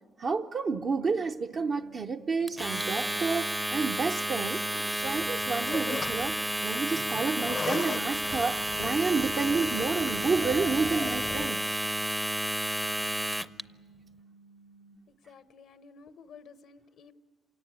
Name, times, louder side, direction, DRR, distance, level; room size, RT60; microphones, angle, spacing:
voice 1, 0.2-11.6, right 4 dB, 50° right, 0.7 m, -30 dB
sound 1, 1.5-15.0, right 4 dB, 80° right, 6.2 m, -56 dB
Domestic sounds home sounds, 2.5-13.6, right 1 dB, 5° right, 0.6 m, -31 dB
sound 2, 5.0-6.4 7.3-11.5, left 5 dB, 45° left, 0.6 m, -39 dB
voice 2, 15.1-17.1, left 5 dB, 75° left, 0.9 m, -52 dB
27.0 x 17.5 x 9.4 m
cardioid pair, 90°, 0 cm